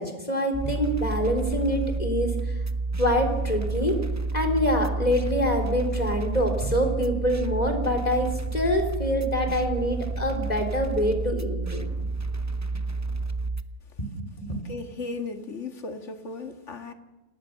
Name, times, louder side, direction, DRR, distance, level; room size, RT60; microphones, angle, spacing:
voice 1, 0.0-2.3 3.0-4.0 4.3-11.9 14.0-14.6, equal, 25° left, 3.8 m, -25 dB
sound 1, 0.5-13.6, right 3 dB, 20° right, 0.4 m, -30 dB
voice 2, 14.7-16.9, left 3 dB, 50° left, 2.1 m, -36 dB
29.0 x 18.5 x 6.7 m
omnidirectional pair, 1.6 m